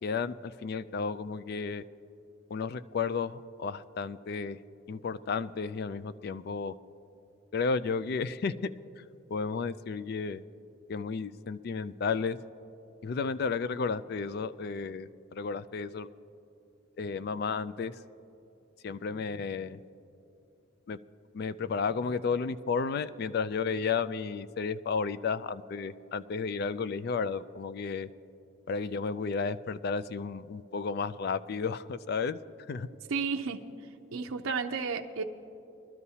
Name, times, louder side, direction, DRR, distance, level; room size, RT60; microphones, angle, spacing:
voice 1, 0.0-1.8 2.5-4.6 4.9-6.7 7.5-8.5 9.3-10.4 10.9-12.4 13.0-16.1 17.0-17.9 18.8-19.8 20.9-21.0 21.3-28.1 28.7-32.4 32.7-32.9, left 5 dB, 50° left, 15 dB, 0.3 m, -32 dB
voice 2, 33.1-33.6 34.1-35.2, right 5 dB, 85° right, 4 dB, 0.6 m, -32 dB
22.0 x 12.0 x 2.8 m, 2.8 s
head